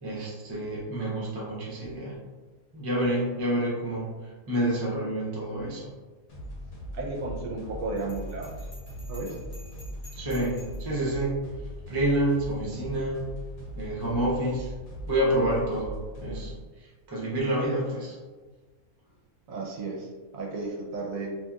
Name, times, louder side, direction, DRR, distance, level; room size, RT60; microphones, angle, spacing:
voice 1, 0.0-2.1 2.7-5.9 10.2-11.4 11.9-13.2 13.8-14.7 15.1-18.2, right 1 dB, 35° right, -5 dB, 0.3 m, -28 dB
sound 1, 6.3-16.6, equal, 70° left, 1.1 m, -40 dB
voice 2, 6.9-8.6 9.1-9.4 19.5-21.3, right 3 dB, 70° right, -2 dB, 0.9 m, -34 dB
Bell, 8.0-10.9, equal, 45° left, 0.9 m, -51 dB
2.8 x 2.5 x 2.3 m, 1.3 s
omnidirectional pair, 1.6 m